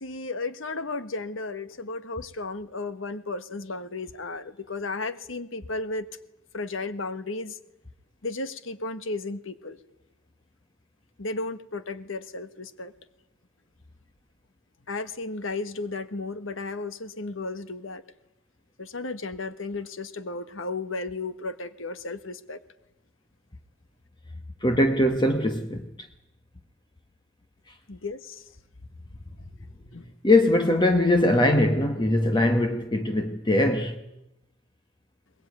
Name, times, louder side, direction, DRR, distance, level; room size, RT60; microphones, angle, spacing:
voice 1, 0.0-6.1 6.5-7.6 8.2-9.8 11.2-12.9 14.9-18.0 18.8-22.6 27.9-28.4 29.9-30.0, left 3 dB, 75° left, 1.4 m, -34 dB
voice 2, 24.6-25.9 30.2-33.9, left 1 dB, 25° left, 1.2 m, -21 dB
22.5 x 20.5 x 9.4 m
head